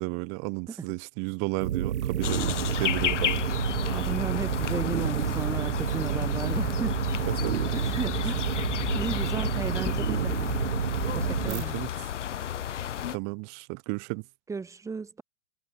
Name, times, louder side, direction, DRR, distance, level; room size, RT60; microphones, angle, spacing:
voice 1, 0.0-2.4 2.8-3.4 7.3-7.7 11.5-11.9 13.1-14.2, right 40 dB or more, 30° right, 2.1 m, -33 dB
sound 1, 1.6-11.6, right 10 dB, 65° right, 3.7 m, -29 dB
sound 2, 2.2-13.2, left 10 dB, 70° left, 2.5 m, -32 dB
voice 2, 3.9-7.0 7.7-8.7 8.9-10.4 11.1-11.8 14.5-15.2, right 4 dB, 10° right, 2.8 m, -35 dB
hypercardioid pair, 150°, 37 cm